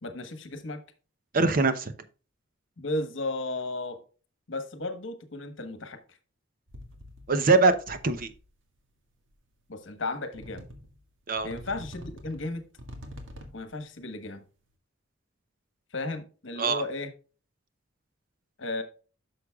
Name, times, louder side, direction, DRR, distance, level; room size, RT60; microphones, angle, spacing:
voice 1, 0.0-0.8 2.8-4.0 4.5-6.0 9.7-10.6 11.4-12.7 13.5-14.4 15.9-17.1 18.6-18.8, left 2 dB, 65° left, 1.2 m, -34 dB
voice 2, 1.3-1.9 7.3-8.3 11.3-11.5 16.6-16.8, right 3 dB, 45° right, 0.8 m, -23 dB
sound 1, 6.7-7.4 7.7-8.5 9.3-9.4 10.3-11.0 11.4-13.7, equal, 70° right, 1.6 m, -45 dB
11.0 x 6.5 x 2.3 m
head